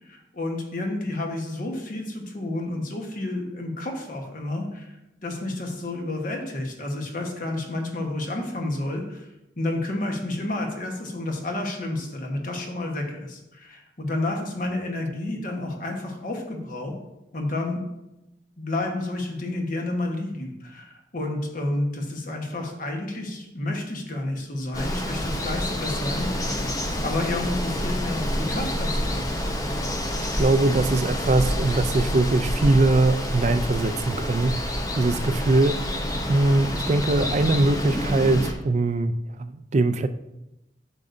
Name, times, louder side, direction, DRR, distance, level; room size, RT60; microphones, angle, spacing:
voice 1, 0.0-9.3 9.6-17.0 17.3-17.8 18.6-26.7 27.0-29.3, left 2 dB, 50° left, 2 dB, 1.3 m, -30 dB
Water, 24.7-38.5, left 1 dB, 20° left, 0.7 m, -28 dB
voice 2, 30.2-36.0 36.3-40.1, right 2 dB, 40° right, 11 dB, 0.4 m, -22 dB
8.5 x 6.5 x 2.6 m, 0.94 s
head